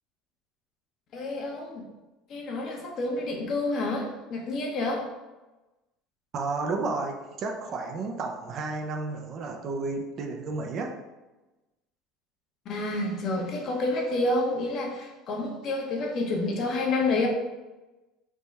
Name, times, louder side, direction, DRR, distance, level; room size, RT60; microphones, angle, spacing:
voice 1, 1.1-1.9 2.3-5.1 12.6-17.3, left 2 dB, 50° left, 0 dB, 0.9 m, -29 dB
voice 2, 6.3-11.0, right 3 dB, 45° right, 3 dB, 0.5 m, -32 dB
3.5 x 2.2 x 4.1 m, 1.1 s
supercardioid pair, 120°, 0 cm